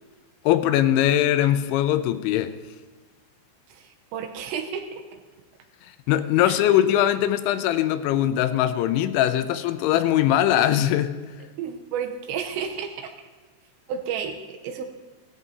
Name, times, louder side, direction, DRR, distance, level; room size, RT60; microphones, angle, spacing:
voice 1, 0.4-2.6 6.1-11.1, left 12 dB, 85° left, 10 dB, 2.9 m, -21 dB
voice 2, 3.7-5.2 6.4-6.8 11.6-13.1 13.9-14.9, right 7 dB, 80° right, 5 dB, 2.9 m, -32 dB
18.5 x 13.5 x 2.8 m, 1.3 s
omnidirectional pair, 5.4 m